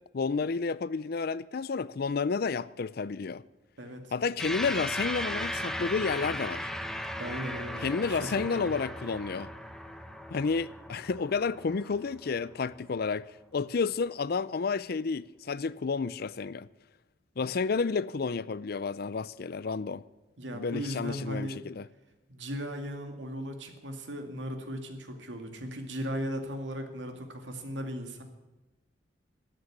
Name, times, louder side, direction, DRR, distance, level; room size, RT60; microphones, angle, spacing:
voice 1, 0.1-3.4 4.1-6.7 7.8-9.5 10.3-16.7 17.4-20.0 20.5-21.9, left 4 dB, 55° left, 0.5 m, -31 dB
sound 1, 4.4-13.1, equal, 5° left, 1.0 m, -37 dB
voice 2, 7.2-8.7 20.4-21.6 22.3-28.2, equal, 85° right, 2.3 m, -37 dB
13.0 x 9.3 x 9.9 m
head